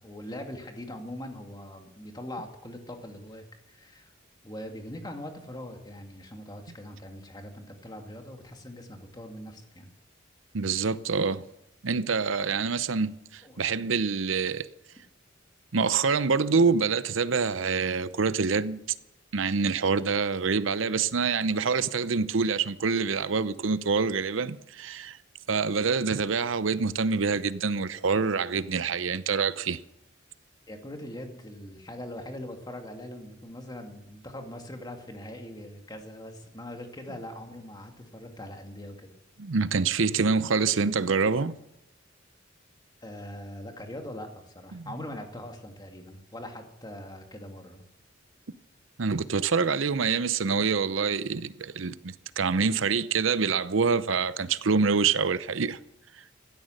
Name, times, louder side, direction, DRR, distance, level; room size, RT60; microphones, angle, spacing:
voice 1, 0.0-4.1 4.4-9.9 12.4-12.6 13.4-13.6 30.7-39.1 43.0-47.8, left 1 dB, 20° left, 2.3 m, -42 dB
voice 2, 10.5-11.4 11.8-14.7 15.7-18.8 19.3-25.2 25.5-29.8 39.4-41.6 44.7-44.9 49.0-55.8, right 5 dB, 75° right, 0.7 m, -26 dB
16.0 x 13.0 x 6.6 m
head